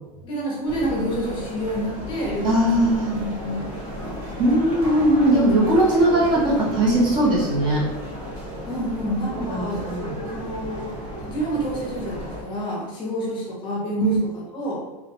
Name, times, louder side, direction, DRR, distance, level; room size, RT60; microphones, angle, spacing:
voice 1, 0.2-4.2 8.7-11.0 11.2-14.8, equal, 25° left, -3 dB, 0.6 m, -28 dB
sound 1, 0.6-12.4, equal, 80° right, 1.0 m, -34 dB
voice 2, 2.4-3.1 4.4-7.9 9.5-10.1 14.0-14.2, right 1 dB, 25° right, -5 dB, 0.5 m, -19 dB
2.9 x 2.1 x 2.8 m, 1.1 s
supercardioid pair, 170°, 18 cm